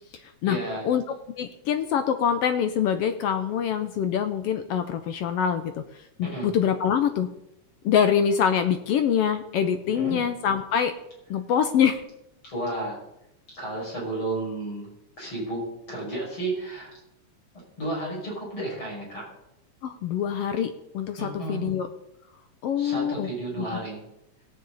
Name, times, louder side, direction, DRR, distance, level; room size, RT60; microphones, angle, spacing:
voice 1, 0.4-0.8 6.2-6.5 9.9-10.2 12.5-13.0 13.5-14.9 15.2-15.6 15.9-16.9 17.8-19.3 21.2-21.7 22.8-24.0, right 2 dB, 45° left, -5 dB, 6.8 m, -32 dB
voice 2, 1.4-5.8 6.2-7.3 7.8-10.9 11.3-12.0 19.8-21.9 22.6-23.3 23.6-23.7, left 8 dB, 75° left, 9 dB, 1.4 m, -24 dB
17.5 x 8.5 x 4.0 m, 0.84 s
omnidirectional pair, 3.3 m